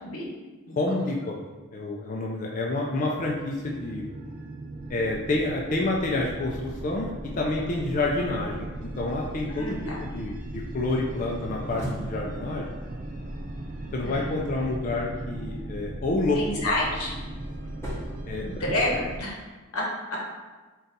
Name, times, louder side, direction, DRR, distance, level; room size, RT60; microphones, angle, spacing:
voice 1, 0.8-1.3 1.7-4.1 4.9-7.1 7.4-9.8 10.0-12.7 13.9-16.6 18.3-18.4, left 2 dB, 35° left, -2 dB, 0.4 m, -28 dB
sound 1, 3.5-19.2, right 1 dB, 40° right, 0.4 m, -37 dB
voice 2, 9.5-10.0 14.0-14.3 16.4-17.1 18.4-19.4 19.7-20.2, left 1 dB, 90° left, -3 dB, 1.0 m, -29 dB
sound 2, 11.2-14.3 16.5-19.1, equal, 10° left, 0.8 m, -41 dB
3.8 x 2.3 x 4.0 m, 1.3 s
head